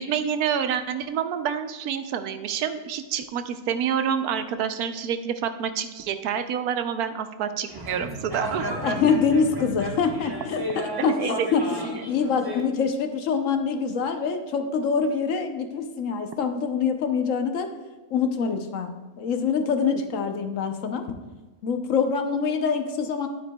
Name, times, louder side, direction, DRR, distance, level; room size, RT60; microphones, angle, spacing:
voice 1, 0.0-8.7 11.1-11.5, right 8 dB, 85° right, 9 dB, 1.2 m, -28 dB
sound 1, 7.7-12.6, equal, 15° right, 1.0 m, -33 dB
voice 2, 8.5-17.7 18.1-21.1 21.6-23.3, left 5 dB, 65° left, 6 dB, 1.1 m, -25 dB
11.0 x 8.8 x 2.3 m, 1.2 s
omnidirectional pair, 1.6 m